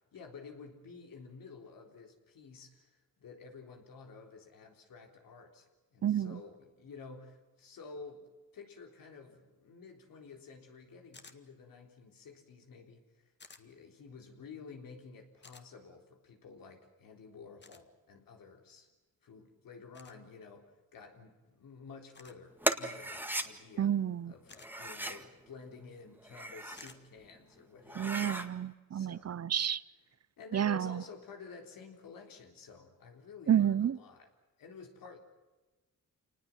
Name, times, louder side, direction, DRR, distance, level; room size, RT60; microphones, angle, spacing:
voice 1, 0.1-8.3 8.5-13.3 13.6-18.9 19.2-23.9 24.2-28.3 28.9-29.3 30.4-34.3 34.6-35.2, left 5 dB, 90° left, 3 dB, 3.9 m, -51 dB
voice 2, 6.0-6.4 23.8-24.3 28.0-29.8 30.5-31.0 33.5-34.0, right 9 dB, 50° right, 19 dB, 0.7 m, -30 dB
sound 1, 11.1-11.4 13.4-13.6 15.4-15.7 17.6-17.8 19.9-20.2 22.1-22.4 24.5-24.7 26.8-27.0, left 4 dB, 35° left, 1.9 m, -54 dB
sound 2, 22.6-23.5 24.6-25.2 26.2-26.9 27.4-27.5 27.8-28.5, right 1 dB, 5° right, 1.8 m, -36 dB
28.0 x 19.5 x 7.4 m, 1.2 s
cardioid pair, 105°, 33 cm